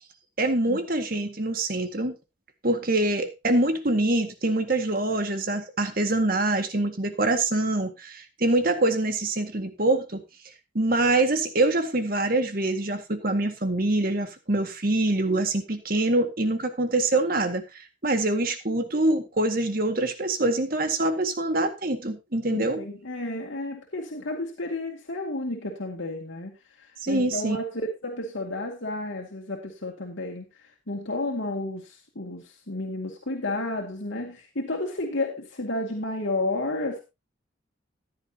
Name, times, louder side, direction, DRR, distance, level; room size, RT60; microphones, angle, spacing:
voice 1, 0.4-2.2 2.6-10.2 10.7-22.8 27.0-27.6, right 2 dB, 50° right, 7 dB, 1.8 m, -25 dB
voice 2, 22.5-37.0, left 2 dB, 85° left, 0 dB, 2.2 m, -32 dB
15.0 x 10.5 x 2.8 m, 0.25 s
head